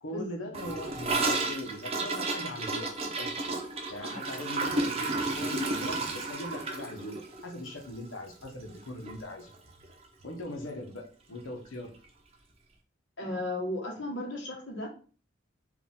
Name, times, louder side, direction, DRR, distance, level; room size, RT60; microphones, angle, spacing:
voice 1, 0.0-3.6 3.9-9.5 10.2-11.9, left 1 dB, 85° left, 1.0 m, -40 dB
Gurgling / Toilet flush, 0.5-8.8 9.1-9.2 9.5-9.9 10.2-10.3 10.6-10.7 11.6-11.7, right 3 dB, 30° right, 0.8 m, -32 dB
voice 2, 13.2-14.9, left 1 dB, 65° left, 1.5 m, -35 dB
4.8 x 2.6 x 3.6 m
head